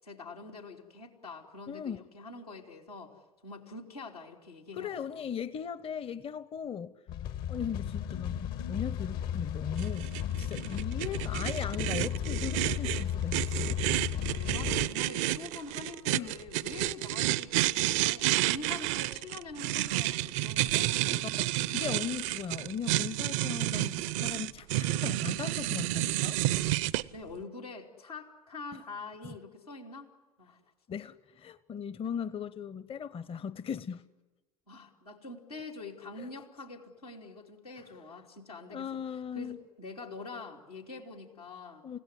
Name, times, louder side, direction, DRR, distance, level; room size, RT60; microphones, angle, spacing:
voice 1, 0.0-5.2 14.3-17.5 18.0-21.3 27.1-30.1 30.4-30.6 34.7-38.9 39.3-41.8, left 3 dB, 90° left, 3.2 m, -45 dB
voice 2, 1.7-2.0 4.8-6.9 7.5-10.1 10.4-13.8 16.1-16.4 20.7-26.4 29.2-29.3 30.9-34.0 36.2-36.3 38.7-39.6 41.8-42.0, left 7 dB, 30° left, 0.9 m, -38 dB
sound 1, 7.1-14.9, left 10 dB, 55° left, 1.3 m, -34 dB
sound 2, 9.8-27.0, right 16 dB, 60° right, 0.7 m, -30 dB
29.5 x 17.0 x 9.6 m
figure-of-eight pair, 70°, 19 cm